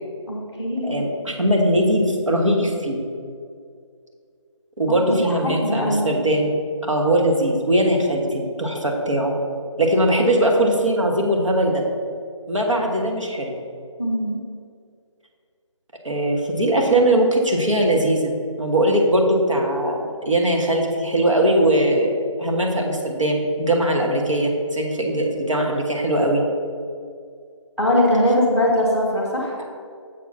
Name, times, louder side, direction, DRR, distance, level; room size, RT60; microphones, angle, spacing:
voice 1, 0.3-1.0 5.1-6.2 14.0-14.4 27.8-29.5, left 1 dB, 5° right, -3 dB, 0.9 m, -21 dB
voice 2, 0.8-3.0 4.8-9.3 9.8-11.8 12.5-13.5 16.0-22.1 22.4-26.4 29.6-29.7, right 1 dB, 70° right, 0 dB, 1.5 m, -20 dB
7.1 x 4.7 x 5.8 m, 2.3 s
figure-of-eight pair, 160°, 17 cm